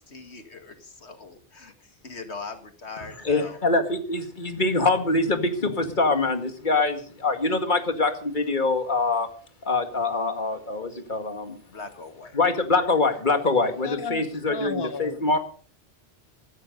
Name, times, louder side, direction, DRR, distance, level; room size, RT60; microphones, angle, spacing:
voice 1, 0.0-3.6 11.7-12.4, left 4 dB, 75° left, 7 dB, 2.3 m, -41 dB
voice 2, 3.0-9.3 9.7-11.6 12.3-15.4, left 3 dB, 45° left, 7 dB, 2.2 m, -24 dB
voice 3, 13.8-15.4, left 4 dB, 25° left, 11 dB, 0.9 m, -34 dB
15.5 x 14.0 x 5.3 m, 0.42 s
omnidirectional pair, 1.1 m